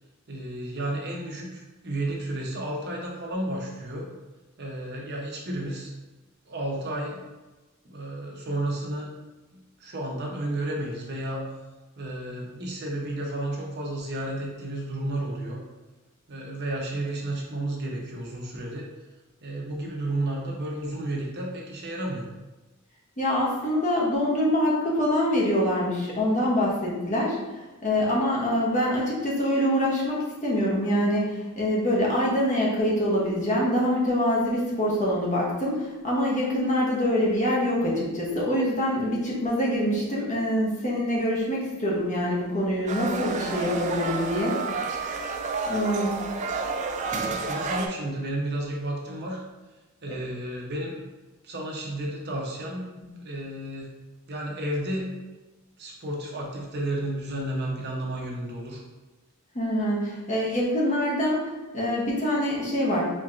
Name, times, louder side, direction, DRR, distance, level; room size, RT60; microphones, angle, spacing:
voice 1, 0.3-4.1 4.6-5.9 6.5-7.2 7.8-9.1 9.5-11.4 12.0-15.6 16.3-18.9 19.4-22.3 47.1-49.4 50.0-51.0 51.4-52.9 53.2-53.9 54.3-55.1 55.8-58.8, right 1 dB, 50° right, -1 dB, 0.8 m, -32 dB
voice 2, 23.2-27.4 27.8-44.6 45.7-46.2 47.1-47.2 53.0-53.1 59.5-63.0, equal, 35° left, -4 dB, 0.9 m, -25 dB
sound 1, 42.9-47.9, right 4 dB, 35° right, 0.3 m, -30 dB
4.4 x 2.9 x 2.5 m, 1.1 s
head